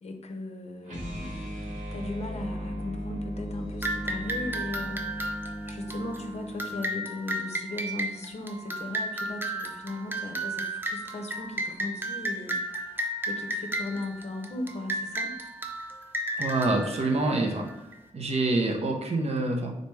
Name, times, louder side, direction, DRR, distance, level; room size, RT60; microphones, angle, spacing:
voice 1, 0.0-5.0 5.7-12.6 13.3-15.4, left 2 dB, 55° left, 4 dB, 0.6 m, -37 dB
sound 1, 0.8-6.9, equal, 80° right, 1.5 m, -37 dB
sound 2, 3.8-18.0, right 1 dB, 15° right, 0.5 m, -34 dB
voice 2, 16.4-17.7 18.1-19.7, right 2 dB, 55° right, 2 dB, 0.6 m, -26 dB
3.9 x 3.3 x 3.2 m, 0.96 s
wide cardioid pair, 130°, 13 cm